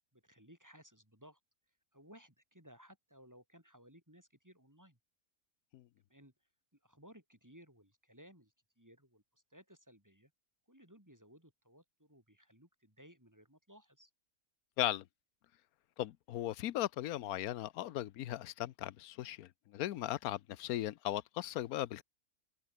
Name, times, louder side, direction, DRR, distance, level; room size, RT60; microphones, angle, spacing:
voice 1, 0.1-1.4 1.9-5.0 6.1-6.3 6.8-10.3 10.7-14.1, equal, 10° right, 4.3 m, -60 dB
voice 2, 16.0-22.0, left 13 dB, 85° left, 1.2 m, -37 dB
omnidirectional pair, 1.5 m